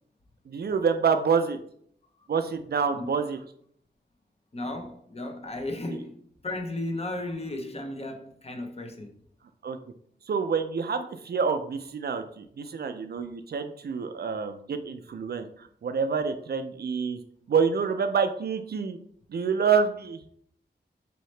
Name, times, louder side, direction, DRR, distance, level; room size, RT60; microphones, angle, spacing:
voice 1, 0.5-1.6 2.3-3.4 5.9-6.0 9.6-9.8 10.3-17.2 17.5-19.0 19.3-20.2, right 6 dB, 60° right, 0.4 m, -27 dB
voice 2, 4.5-6.2 6.4-9.1, left 2 dB, 35° left, 0.7 m, -34 dB
4.1 x 2.8 x 3.2 m
wide cardioid pair, 90°, 19 cm